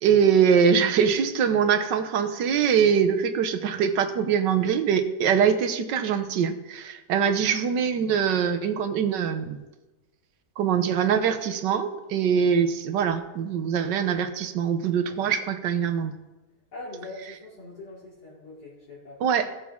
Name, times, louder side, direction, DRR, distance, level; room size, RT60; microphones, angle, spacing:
voice 1, 0.0-9.6 10.6-16.1 19.2-19.5, right 7 dB, 85° right, 8 dB, 1.5 m, -23 dB
voice 2, 16.7-19.2, left 2 dB, 65° left, -8 dB, 3.7 m, -42 dB
18.0 x 7.4 x 3.6 m, 1.1 s
omnidirectional pair, 1.9 m